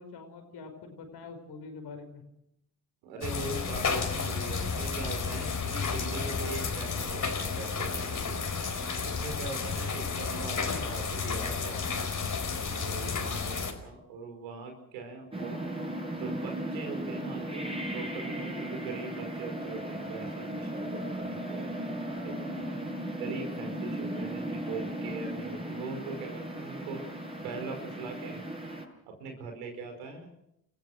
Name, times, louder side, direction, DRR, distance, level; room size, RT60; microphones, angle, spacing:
voice 1, 0.0-2.2, left 4 dB, 65° left, 5 dB, 5.5 m, -45 dB
voice 2, 3.0-8.4 9.0-12.1 12.8-15.6 16.1-22.7 23.1-27.0 27.3-28.4 29.1-30.3, right 3 dB, 85° right, 4 dB, 5.0 m, -41 dB
sound 1, 3.2-13.7, left 5 dB, 45° left, 4.5 m, -32 dB
sound 2, 15.3-28.9, right 1 dB, 15° right, 7.7 m, -36 dB
30.0 x 15.5 x 6.4 m, 0.79 s
hypercardioid pair, 50°, 43 cm